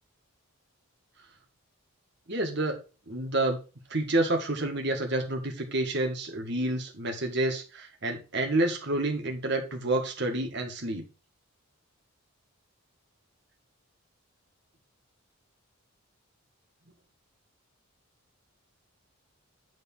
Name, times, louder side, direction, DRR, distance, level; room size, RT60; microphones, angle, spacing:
voice 1, 2.3-2.8 3.1-3.6 3.9-11.0, right 2 dB, 50° right, 3 dB, 1.8 m, -29 dB
9.5 x 3.8 x 5.4 m, 0.33 s
head